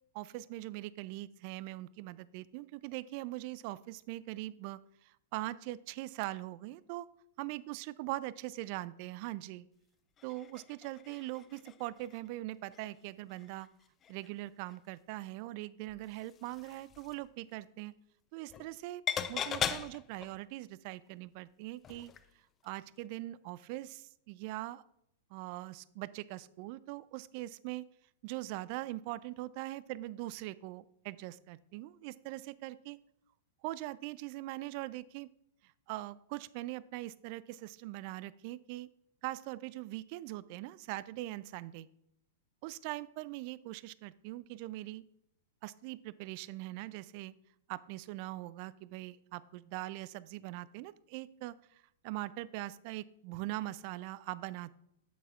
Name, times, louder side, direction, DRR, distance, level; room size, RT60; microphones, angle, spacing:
voice 1, 0.1-7.1 7.4-9.7 10.2-13.7 14.1-17.9 18.3-19.0 19.3-22.1 22.6-24.8 25.3-27.8 28.2-33.0 33.6-35.3 35.9-38.9 39.2-41.9 42.6-45.0 45.6-47.3 47.7-54.8, right 17 dB, 45° right, 19 dB, 0.3 m, -42 dB
sound 1, 10.2-12.3 12.7-12.9 13.3-14.3 14.7-14.8 15.9-17.3 18.5-18.8 19.1-20.4 21.8-22.3 22.6-22.7, left 8 dB, 25° left, 0.4 m, -40 dB
8.2 x 8.0 x 2.4 m, 0.77 s
hypercardioid pair, 105°, 0 cm